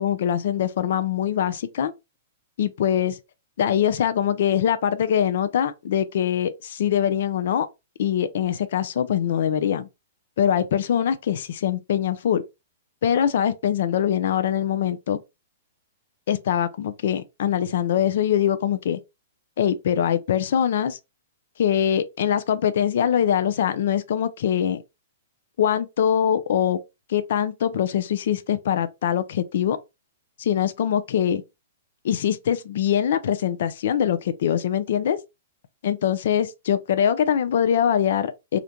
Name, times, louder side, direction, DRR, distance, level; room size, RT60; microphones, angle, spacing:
voice 1, 0.0-1.9 2.6-3.2 3.6-7.7 8.0-9.9 10.4-12.4 13.0-15.2 16.3-19.0 19.6-21.0 21.6-24.8 25.6-26.8 27.1-29.8 30.4-31.4 32.0-35.2 35.8-38.6, left 9 dB, 65° left, 0.4 m, -23 dB
2.5 x 2.1 x 2.9 m
hypercardioid pair, 140°, 0 cm